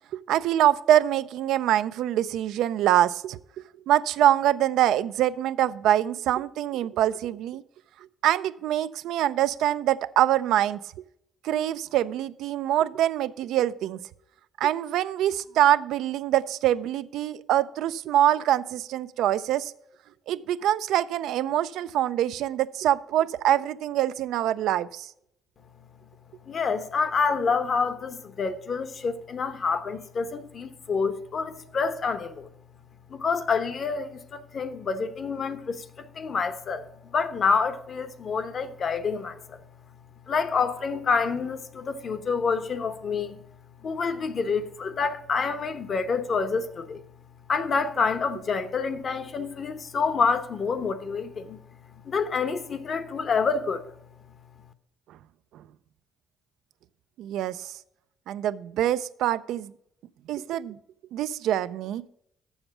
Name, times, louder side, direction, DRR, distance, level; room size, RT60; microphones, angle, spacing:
voice 1, 0.1-7.6 8.2-10.8 11.4-14.0 14.6-19.7 20.3-25.1 57.2-57.7 58.3-59.7 60.3-60.8 61.1-62.1, right 12 dB, 85° right, 0.3 m, -24 dB
voice 2, 26.5-32.5 33.1-39.6 40.3-43.4 43.8-47.0 47.5-51.6 52.0-53.9, left 5 dB, 50° left, 0.9 m, -27 dB
7.1 x 6.8 x 5.9 m
cardioid pair, 90°, 0 cm